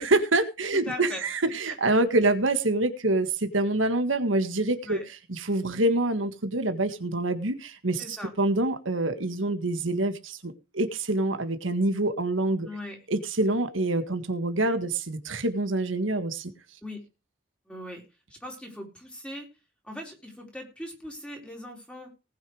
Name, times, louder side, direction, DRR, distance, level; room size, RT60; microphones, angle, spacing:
voice 1, 0.0-5.0 5.3-12.7 13.1-16.5, right 2 dB, 90° right, 9 dB, 1.7 m, -26 dB
voice 2, 0.7-1.2 1.6-1.7 4.8-5.1 8.0-8.3 12.6-13.0 16.8-17.0 17.7-18.0 18.3-19.5 19.8-22.1, left 1 dB, 5° left, 0 dB, 4.4 m, -39 dB
19.0 x 6.7 x 4.9 m, 0.30 s
head